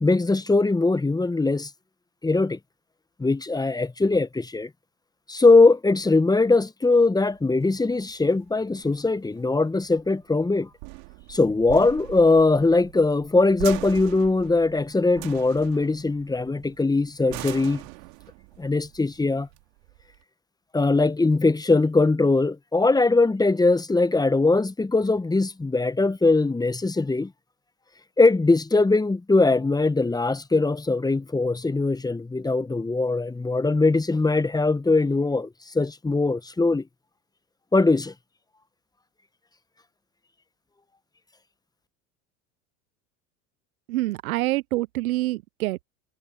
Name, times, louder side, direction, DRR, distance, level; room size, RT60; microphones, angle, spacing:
voice 1, 0.0-1.7 2.2-2.6 3.2-4.7 5.3-10.7 11.3-17.8 18.6-19.5 20.7-27.3 28.2-36.9 37.7-38.1, left 3 dB, 10° left, 1.0 m, -21 dB
sound 1, 7.2-20.2, right 29 dB, 70° right, 2.3 m, -41 dB
voice 2, 43.9-45.8, right 18 dB, 90° right, 0.5 m, -26 dB
hypercardioid pair, 90°, 41 cm